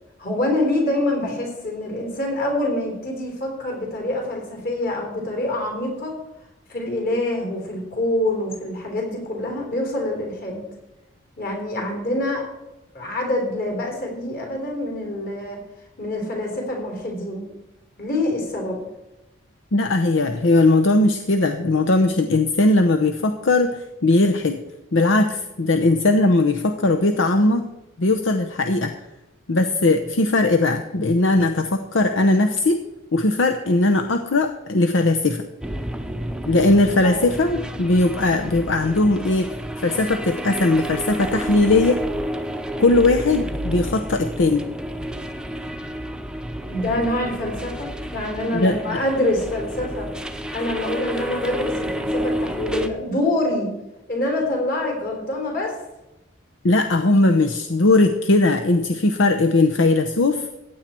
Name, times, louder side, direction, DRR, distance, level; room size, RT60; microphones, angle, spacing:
voice 1, 0.2-6.2 6.7-10.6 11.4-12.5 12.9-15.6 16.0-17.5 18.0-18.8 37.0-37.2 46.7-50.1 50.5-53.7 54.1-55.8, left 1 dB, 45° left, 1 dB, 3.9 m, -25 dB
voice 2, 19.7-24.6 24.9-27.7 28.0-28.9 29.5-32.8 33.1-35.4 36.5-42.0 42.8-44.6 48.5-49.0 56.6-60.5, left 2 dB, 75° left, 6 dB, 0.8 m, -19 dB
sound 1, 35.6-52.9, equal, 5° right, 0.7 m, -30 dB
15.0 x 9.4 x 4.4 m, 0.95 s
head